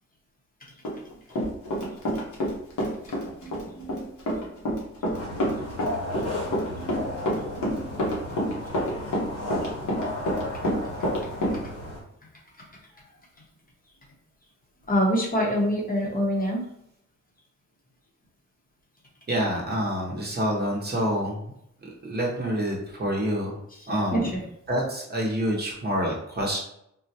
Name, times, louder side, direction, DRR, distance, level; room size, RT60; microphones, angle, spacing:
Run, 0.8-2.5 2.8-11.6, equal, 90° left, 1.0 m, -27 dB
voice 1, 3.1-4.2 6.3-7.1 7.5-8.0 14.9-16.6 24.1-24.4, equal, 30° left, -2 dB, 0.7 m, -27 dB
sound 1, 5.1-12.0, left 1 dB, 60° left, 0.9 m, -34 dB
voice 2, 19.3-21.4 21.8-23.6 23.9-24.3 24.7-26.6, equal, 35° right, -2 dB, 0.7 m, -27 dB
3.7 x 2.1 x 2.7 m, 0.75 s
wide cardioid pair, 135°, 29 cm